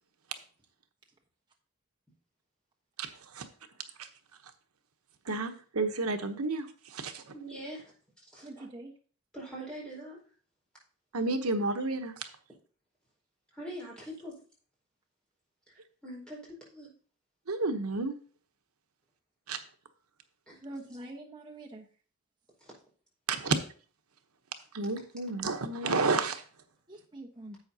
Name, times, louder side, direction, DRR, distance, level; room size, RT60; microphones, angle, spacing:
voice 1, 3.0-3.5 4.0-4.1 5.2-7.2 11.1-12.3 17.5-18.2 19.5-19.6 23.3-23.5 24.7-26.4, right 3 dB, 80° right, 8 dB, 1.0 m, -31 dB
voice 2, 7.3-7.9 8.2-8.6 9.3-10.2 13.5-14.4 16.0-16.9 20.5-20.9 22.6-22.7, right 1 dB, 5° left, -5 dB, 4.7 m, -43 dB
voice 3, 8.4-8.9 20.6-21.9 26.9-27.6, right 2 dB, 20° right, -1 dB, 1.1 m, -44 dB
11.0 x 8.0 x 2.8 m, 0.41 s
head